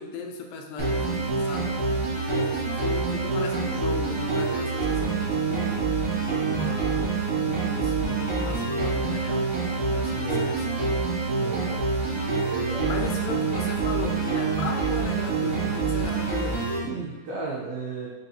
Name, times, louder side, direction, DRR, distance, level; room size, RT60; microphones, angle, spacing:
voice 1, 0.0-1.7 2.3-5.9 6.4-7.2 7.5-9.5 9.9-10.8 12.9-16.6, left 5 dB, 80° left, 2 dB, 2.2 m, -36 dB
sound 1, 0.8-16.8, right 4 dB, 55° right, 1.7 m, -26 dB
voice 2, 10.2-10.6 11.4-11.9 12.4-12.9 16.8-18.1, right 3 dB, 85° right, -5 dB, 1.6 m, -34 dB
4.7 x 4.1 x 2.7 m, 1.3 s
omnidirectional pair, 4.1 m